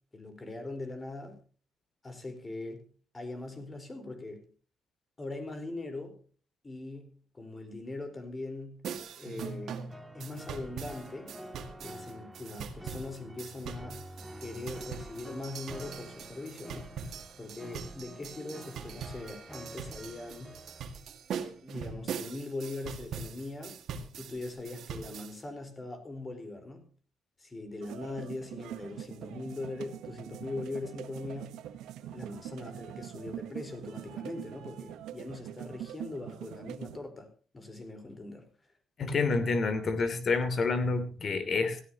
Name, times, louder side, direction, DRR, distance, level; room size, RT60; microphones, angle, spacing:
voice 1, 0.1-1.4 2.0-2.8 3.1-4.5 5.2-6.2 6.6-8.8 9.2-9.8 10.1-11.3 11.8-14.1 14.4-16.9 17.4-20.6 21.4-23.8 24.1-26.9 27.4-31.6 32.0-37.3 37.5-38.5, left 2 dB, 25° left, 7 dB, 4.5 m, -41 dB
sound 1, 8.8-25.4, right 6 dB, 70° right, 2.0 m, -42 dB
sound 2, 9.4-20.9, equal, 5° right, 2.5 m, -48 dB
sound 3, 27.8-37.0, right 11 dB, 90° right, 1.1 m, -43 dB
voice 2, 39.0-41.8, left 4 dB, 50° left, 11 dB, 2.9 m, -28 dB
16.5 x 15.5 x 3.0 m, 0.40 s
cardioid pair, 90°, 0 cm